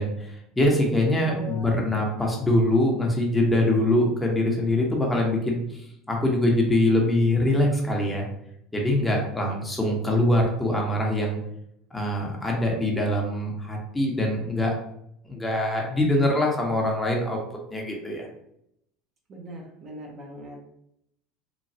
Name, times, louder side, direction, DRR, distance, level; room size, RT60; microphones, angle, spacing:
voice 1, 0.0-8.2 8.7-11.4 11.9-14.7 15.2-17.4 17.7-18.3, left 1 dB, 10° left, -1 dB, 0.8 m, -23 dB
voice 2, 1.3-1.7 9.4-9.5 19.3-20.6, equal, 45° right, 0 dB, 0.8 m, -40 dB
3.0 x 2.2 x 2.7 m, 0.75 s
hypercardioid pair, 90°, 0 cm